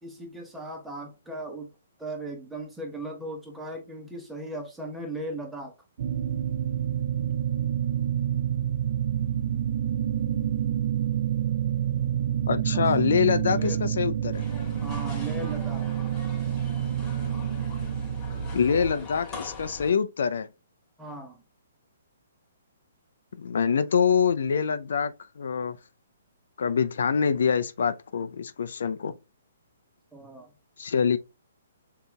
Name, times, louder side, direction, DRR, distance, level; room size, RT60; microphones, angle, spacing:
voice 1, 0.0-1.7 2.0-5.7 12.7-12.8 13.5-13.8 14.8-15.9 21.0-21.4 30.1-30.5, right 1 dB, 5° right, 1.2 m, -37 dB
sound 1, 6.0-19.0, right 10 dB, 55° right, 0.5 m, -28 dB
voice 2, 12.5-14.4 18.5-20.5 23.4-25.8 26.6-29.1 30.8-31.2, left 6 dB, 70° left, 0.4 m, -25 dB
sound 2, 14.3-19.9, left 4 dB, 20° left, 2.5 m, -42 dB
6.6 x 2.7 x 2.2 m
hypercardioid pair, 150°, 0 cm